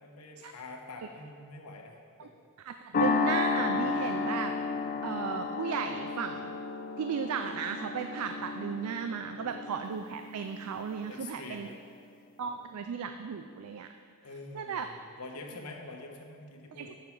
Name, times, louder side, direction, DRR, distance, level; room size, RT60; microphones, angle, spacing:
voice 1, 0.0-2.3 9.4-9.7 11.0-11.8 12.4-12.7 14.2-17.0, left 2 dB, 85° left, 1 dB, 1.1 m, -46 dB
voice 2, 2.6-4.5 5.0-6.6 7.0-11.7 12.4-13.9 14.5-14.9 16.7-16.9, right 6 dB, 80° right, 7 dB, 0.4 m, -35 dB
sound 1, 2.9-11.4, left 4 dB, 40° left, 0.5 m, -33 dB
9.0 x 6.7 x 4.6 m, 2.2 s
head